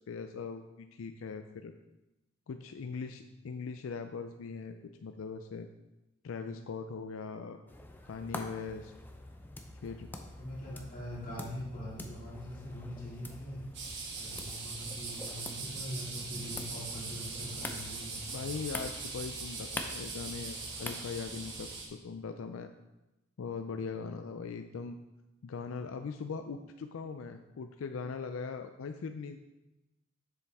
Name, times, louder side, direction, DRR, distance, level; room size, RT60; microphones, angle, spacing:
voice 1, 0.1-1.7 2.5-5.7 6.2-7.6 8.1-8.9 9.8-10.1 18.3-22.7 23.4-25.0 25.4-29.4, left 5 dB, 90° left, 7 dB, 0.4 m, -40 dB
sound 1, 7.7-21.6, left 1 dB, 10° left, 0.6 m, -46 dB
voice 2, 10.4-13.6 14.2-18.5, equal, 45° left, -6 dB, 2.5 m, -43 dB
sound 2, 13.7-21.9, right 4 dB, 60° right, 1.5 m, -41 dB
7.0 x 6.9 x 3.5 m, 0.98 s
head